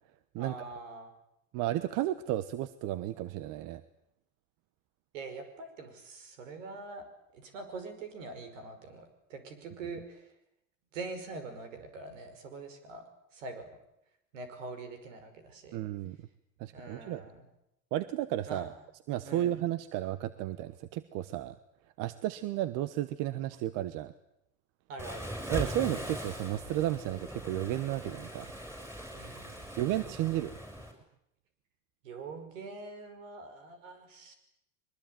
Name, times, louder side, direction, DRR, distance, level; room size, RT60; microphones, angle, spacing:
voice 1, 0.4-1.1 5.1-7.0 7.3-10.3 10.9-13.0 13.3-13.7 14.3-15.8 16.7-17.4 18.5-18.7 19.2-19.6 24.9-25.3 29.1-29.7 32.0-34.3, right 3 dB, 80° right, 9 dB, 5.6 m, -44 dB
voice 2, 1.5-3.8 15.7-16.2 16.6-17.2 17.9-18.7 19.1-21.6 22.0-24.1 25.5-28.5 29.8-30.6, right 13 dB, 55° right, 15 dB, 1.2 m, -33 dB
Waves surf, 25.0-30.9, equal, 5° right, 7.4 m, -40 dB
22.5 x 21.0 x 9.2 m, 0.82 s
hypercardioid pair, 95°, 38 cm